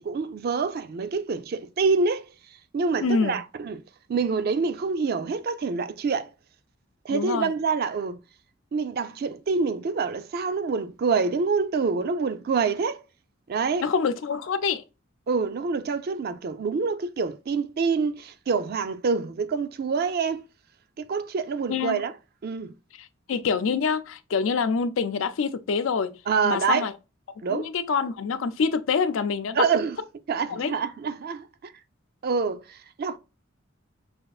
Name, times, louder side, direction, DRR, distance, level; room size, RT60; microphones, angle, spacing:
voice 1, 0.0-2.3 2.7-3.8 4.1-6.3 7.0-8.2 8.7-13.0 13.5-13.9 15.3-20.4 21.0-22.1 22.4-22.7 26.3-26.9 27.4-27.7 29.5-30.0 30.3-31.7 32.2-33.2, right 5 dB, 50° right, 0.4 m, -26 dB
voice 2, 3.0-3.4 7.1-7.5 13.8-14.8 21.7-22.0 23.0-26.2 26.4-26.9 27.5-29.6 30.5-30.7, left 5 dB, 75° left, 0.4 m, -26 dB
6.3 x 2.4 x 2.3 m
head